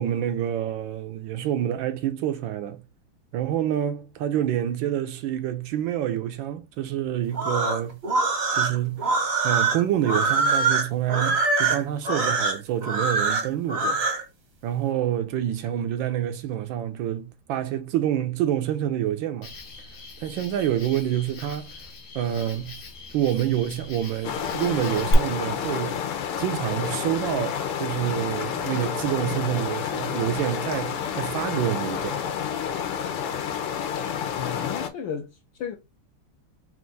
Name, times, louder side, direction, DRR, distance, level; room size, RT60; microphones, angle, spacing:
voice 1, 0.0-2.8 3.3-8.0 8.5-14.1 14.6-19.5 20.2-21.7 22.1-22.8 23.1-26.0 26.4-32.2, right 11 dB, 75° right, 1.2 m, -27 dB
sound 1, 7.3-14.2, right 4 dB, 45° right, 0.8 m, -24 dB
Cricket, 19.4-25.1, left 3 dB, 50° left, 1.2 m, -38 dB
sound 2, 24.2-34.9, left 8 dB, 90° left, 1.7 m, -29 dB
voice 2, 34.3-35.8, left 7 dB, 70° left, 1.3 m, -34 dB
4.4 x 2.5 x 3.8 m
omnidirectional pair, 2.4 m